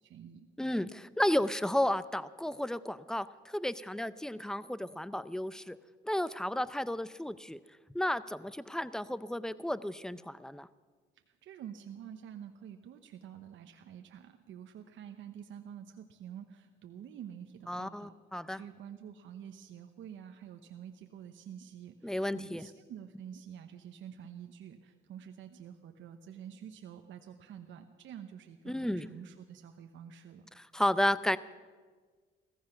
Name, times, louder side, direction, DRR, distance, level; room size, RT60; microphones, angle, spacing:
voice 1, 0.0-0.5 11.3-18.1 18.5-30.5, right 9 dB, 75° right, 5 dB, 1.0 m, -48 dB
voice 2, 0.6-5.8 6.0-7.6 7.9-10.7 17.7-18.6 22.0-22.7 28.7-29.1 30.7-31.4, left 1 dB, 5° left, 16 dB, 0.5 m, -32 dB
16.0 x 15.0 x 5.8 m, 1.5 s
cardioid pair, 90°, 20 cm